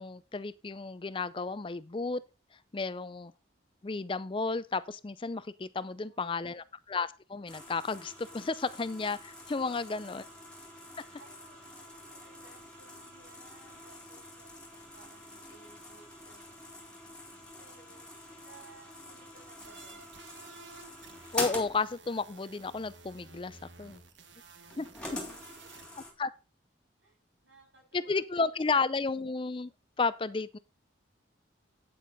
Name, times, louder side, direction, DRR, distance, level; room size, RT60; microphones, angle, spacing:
voice 1, 0.0-2.2 2.7-3.3 3.8-10.2 21.3-24.0 24.8-24.9 26.2-26.3 27.9-29.7 30.0-30.6, left 4 dB, 25° left, 0.4 m, -33 dB
voice 2, 5.8-6.6 9.6-10.2 10.9-20.2 24.9-26.0 27.0-27.2 27.4-29.0, right 3 dB, 90° right, 6.7 m, -60 dB
sound 1, 7.5-26.1, left 2 dB, 5° left, 3.0 m, -45 dB
sound 2, 19.6-25.9, right 4 dB, 70° right, 1.2 m, -53 dB
9.3 x 8.3 x 4.0 m
head